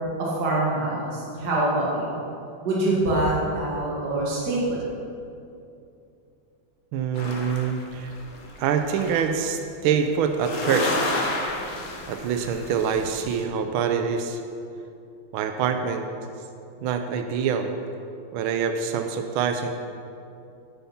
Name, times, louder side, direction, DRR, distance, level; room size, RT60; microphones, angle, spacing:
voice 1, 0.2-2.2 2.6-4.8, right 2 dB, 50° right, -6 dB, 2.3 m, -25 dB
voice 2, 6.9-8.1 8.6-11.2 12.1-14.4 15.3-16.1 16.8-17.7 18.3-19.7, right 7 dB, 80° right, 6 dB, 1.5 m, -25 dB
sound 1, 7.1-9.3 10.3-13.4, left 2 dB, 70° left, 2.0 m, -31 dB
9.8 x 9.2 x 5.8 m, 2.6 s
omnidirectional pair, 2.3 m